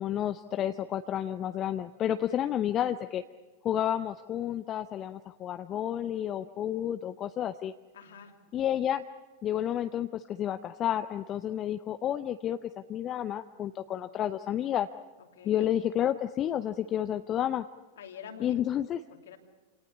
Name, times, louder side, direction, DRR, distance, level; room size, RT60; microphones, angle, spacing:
voice 1, 0.0-3.2 3.6-7.7 8.5-9.0 9.4-14.9 15.4-17.7 18.4-19.0, left 11 dB, 30° left, 10 dB, 0.7 m, -30 dB
voice 2, 7.9-8.5 15.3-15.7 18.0-18.5 18.8-19.4, left 8 dB, 60° left, 4 dB, 2.7 m, -47 dB
27.5 x 18.5 x 8.3 m, 1.3 s
figure-of-eight pair, 90°, 0 cm